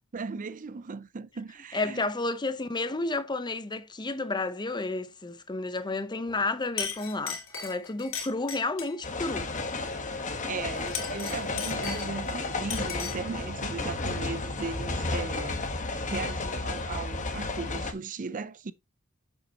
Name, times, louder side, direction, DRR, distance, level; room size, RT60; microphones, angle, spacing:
voice 1, 0.1-2.1 10.4-18.7, right 4 dB, 40° right, 0.5 m, -37 dB
voice 2, 1.7-9.5, left 2 dB, 20° left, 0.7 m, -31 dB
Chink clink, 6.3-6.5 6.8-9.0 10.8-12.3 12.7-13.3, left 7 dB, 65° left, 2.5 m, -37 dB
sound 1, 9.0-17.9, left 3 dB, 35° left, 1.2 m, -33 dB
8.3 x 7.1 x 2.9 m
head